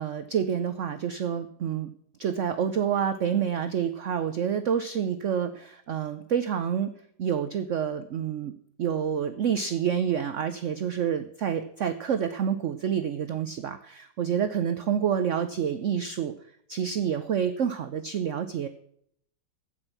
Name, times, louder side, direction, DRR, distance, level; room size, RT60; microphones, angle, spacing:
voice 1, 0.0-1.9 2.2-6.9 7.2-8.5 8.8-16.3 16.7-18.7, right 8 dB, 75° right, 11 dB, 0.6 m, -28 dB
15.5 x 6.2 x 5.9 m, 0.69 s
omnidirectional pair, 2.1 m